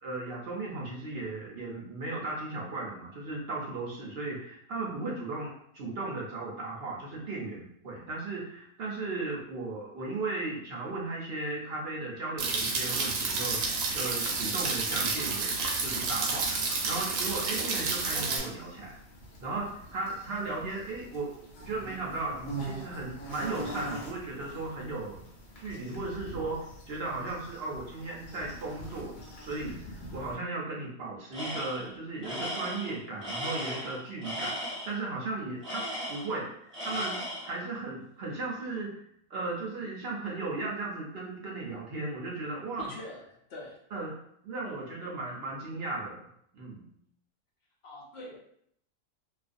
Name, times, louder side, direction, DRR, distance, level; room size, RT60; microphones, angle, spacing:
voice 1, 0.0-15.5 15.8-16.5 16.9-19.0 19.4-21.3 21.6-25.2 25.6-29.1 29.4-34.6 34.8-35.8 36.1-37.2 37.4-39.0 39.3-42.9 43.9-44.1 44.4-46.2 46.5-46.9, right 3 dB, 60° right, -2 dB, 0.7 m, -36 dB
sound 1, 12.4-18.4, right 4 dB, 80° right, 1.0 m, -30 dB
sound 2, 13.2-30.4, right 1 dB, 80° left, 1.1 m, -45 dB
Tools, 31.3-31.9 32.2-35.0 35.6-36.4 36.7-37.6, equal, 25° right, 0.9 m, -36 dB
voice 2, 42.8-43.8 47.8-48.4, left 2 dB, 55° left, -1 dB, 0.9 m, -44 dB
2.4 x 2.4 x 2.4 m, 0.69 s
omnidirectional pair, 1.4 m